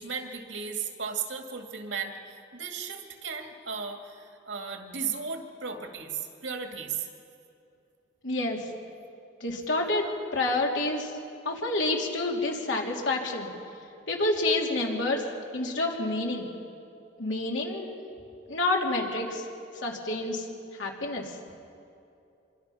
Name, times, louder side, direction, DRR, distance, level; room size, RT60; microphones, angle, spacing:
voice 1, 0.0-7.1, right 6 dB, 80° right, 4 dB, 2.3 m, -35 dB
voice 2, 8.2-8.6 9.4-11.1 11.4-13.5 14.1-15.2 15.5-16.5 17.2-18.0 18.5-19.4 19.7-20.5 20.7-21.3, left 2 dB, 85° left, -1 dB, 3.2 m, -28 dB
25.5 x 24.0 x 5.8 m, 2.7 s
head